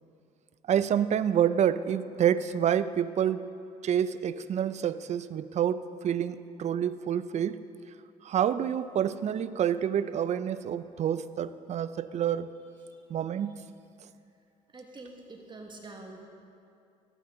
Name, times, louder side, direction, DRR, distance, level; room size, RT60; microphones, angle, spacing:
voice 1, 0.7-3.5 3.8-7.6 8.2-12.5 13.1-13.6, right 9 dB, 50° right, 14 dB, 0.5 m, -28 dB
voice 2, 14.7-16.2, right 2 dB, 30° right, 2 dB, 1.7 m, -46 dB
14.0 x 12.5 x 3.8 m, 2.5 s
supercardioid pair, 80°, 15 cm